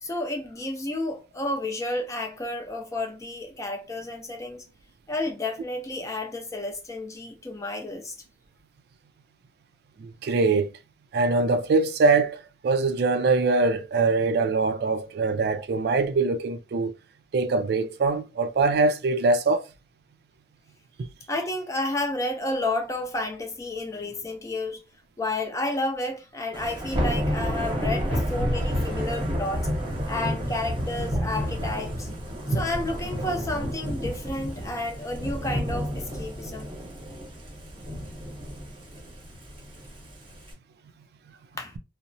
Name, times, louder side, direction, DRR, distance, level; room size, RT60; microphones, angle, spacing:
voice 1, 0.0-4.6 5.1-8.1 21.3-24.8 25.2-29.7 30.1-32.1 32.5-36.7 41.5-41.8, left 2 dB, 20° left, 0.5 m, -31 dB
voice 2, 10.0-10.7 11.1-16.9 17.3-19.7 32.5-32.6, right 3 dB, 60° right, 0.3 m, -23 dB
Thunder / Rain, 26.5-40.5, equal, 30° right, 0.8 m, -30 dB
2.8 x 2.0 x 2.6 m
head